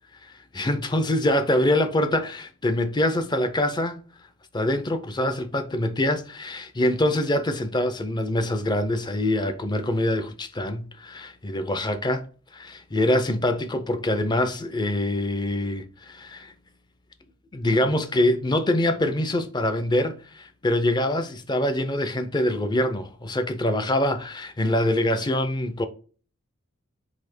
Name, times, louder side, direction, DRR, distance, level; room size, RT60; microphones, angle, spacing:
voice 1, 0.5-4.0 4.5-12.2 12.5-16.5 17.5-25.9, left 1 dB, 20° left, 0.4 m, -24 dB
4.1 x 2.8 x 4.2 m
head